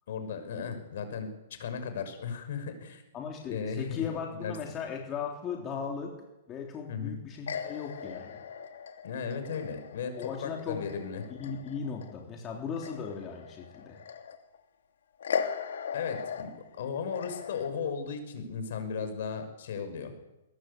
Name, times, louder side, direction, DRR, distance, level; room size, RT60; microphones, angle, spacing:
voice 1, 0.1-1.3 1.6-3.0 3.5-4.5 6.9-7.1 9.0-11.2 15.9-16.5 16.8-20.1, left 6 dB, 60° left, 8 dB, 6.1 m, -36 dB
voice 2, 3.1-6.1 6.5-8.4 10.2-10.8 11.3-14.0, left 6 dB, 20° left, 0 dB, 3.5 m, -37 dB
sound 1, 7.5-12.2 12.5-14.6 15.2-17.7, left 7 dB, 80° left, 3.0 m, -38 dB
22.0 x 19.5 x 8.5 m, 1.0 s
hypercardioid pair, 160°, 0 cm